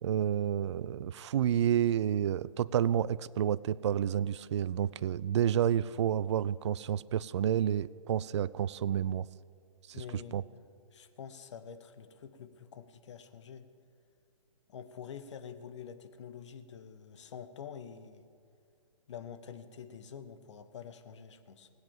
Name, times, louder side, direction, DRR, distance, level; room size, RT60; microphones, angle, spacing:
voice 1, 0.0-9.3 10.3-10.4, right 10 dB, 55° right, 19 dB, 0.4 m, -30 dB
voice 2, 9.9-10.6 10.9-13.7 14.7-18.3 19.1-21.7, left 7 dB, 55° left, 10 dB, 1.1 m, -47 dB
19.0 x 8.0 x 7.2 m, 2.3 s
hypercardioid pair, 135°, 18 cm